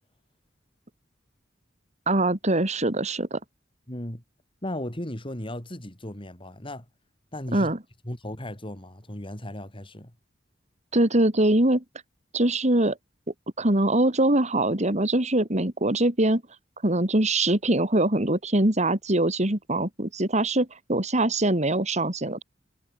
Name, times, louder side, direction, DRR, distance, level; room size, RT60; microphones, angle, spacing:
voice 1, 2.1-3.4 7.5-7.8 10.9-11.8 12.3-13.0 13.6-16.4 16.8-22.4, right 1 dB, 40° right, 3.3 m, -23 dB
voice 2, 3.9-4.2 4.6-6.9 7.3-7.7 8.0-10.1, left 1 dB, 30° left, 4.1 m, -36 dB
head